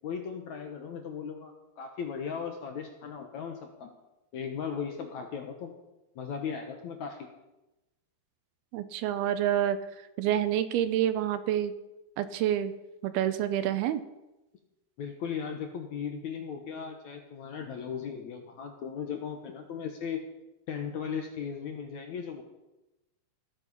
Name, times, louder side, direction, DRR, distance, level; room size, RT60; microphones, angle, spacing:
voice 1, 0.0-3.9 4.3-5.7 6.2-7.3 15.0-20.2 20.7-22.4, left 7 dB, 65° left, 4 dB, 2.0 m, -37 dB
voice 2, 8.7-11.7 12.2-12.7 13.0-14.0, right 11 dB, 80° right, 12 dB, 2.7 m, -28 dB
16.5 x 13.5 x 5.5 m, 0.98 s
omnidirectional pair, 4.7 m